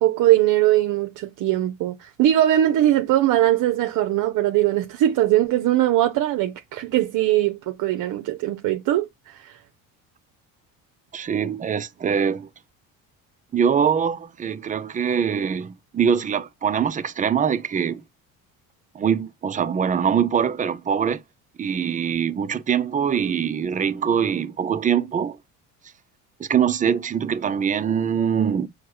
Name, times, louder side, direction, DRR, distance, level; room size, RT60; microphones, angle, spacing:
voice 1, 0.0-9.6, right 13 dB, 60° right, 0.6 m, -21 dB
voice 2, 11.1-12.5 13.5-18.0 18.9-21.2 21.6-25.4 26.4-28.7, right 7 dB, 20° right, 0.4 m, -23 dB
4.5 x 2.1 x 4.5 m
supercardioid pair, 85°, 37 cm